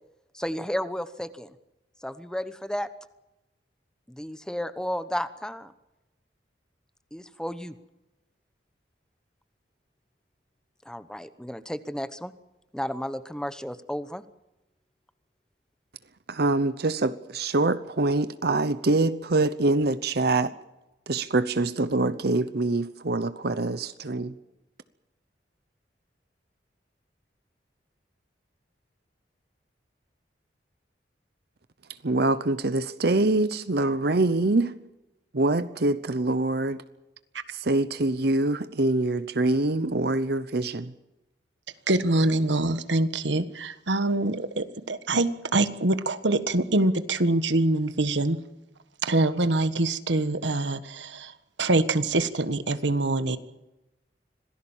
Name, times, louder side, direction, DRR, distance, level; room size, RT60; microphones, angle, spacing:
voice 1, 0.3-1.5 2.0-2.9 4.1-5.7 7.1-7.7 10.9-12.3 12.7-14.2, equal, 5° left, 1.0 m, -33 dB
voice 2, 16.3-20.5 21.1-24.3 32.0-34.7 35.3-36.8 37.5-40.9, right 2 dB, 60° right, 0.9 m, -25 dB
voice 3, 41.9-48.4 49.0-53.4, right 2 dB, 85° right, 1.5 m, -25 dB
26.0 x 18.0 x 7.4 m
head